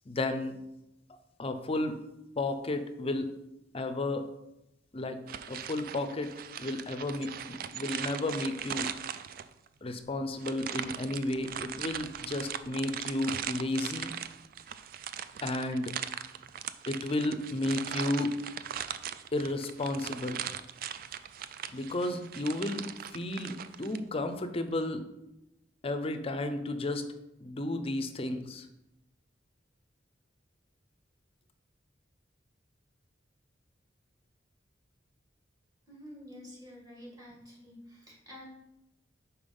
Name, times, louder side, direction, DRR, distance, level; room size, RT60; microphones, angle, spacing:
voice 1, 0.1-0.6 1.4-2.0 2.4-3.3 3.7-4.2 4.9-5.2 5.5-6.3 6.6-8.9 9.8-14.1 15.4-15.9 16.9-18.4 19.3-20.4 21.7-25.0 25.8-27.1 27.4-28.7, left 2 dB, 30° left, 9 dB, 0.5 m, -33 dB
sound 1, 5.3-9.7 10.4-24.0, right 9 dB, 50° right, 0.3 m, -39 dB
voice 2, 35.9-38.4, left 1 dB, 20° right, -3 dB, 1.9 m, -49 dB
5.3 x 4.5 x 5.2 m, 0.89 s
head